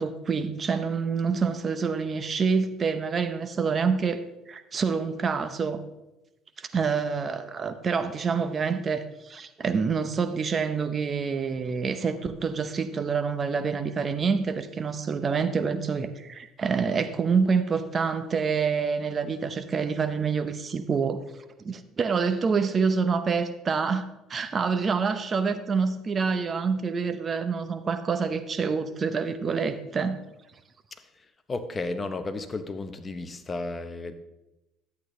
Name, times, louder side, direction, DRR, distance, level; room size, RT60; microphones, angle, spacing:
voice 1, 0.0-5.8 6.6-21.2 21.6-24.0 24.3-30.2, right 5 dB, 35° right, 0.8 m, -27 dB
voice 2, 30.9-34.1, left 3 dB, 25° left, 0.9 m, -34 dB
11.5 x 8.3 x 3.2 m
cardioid pair, 105°, 0 cm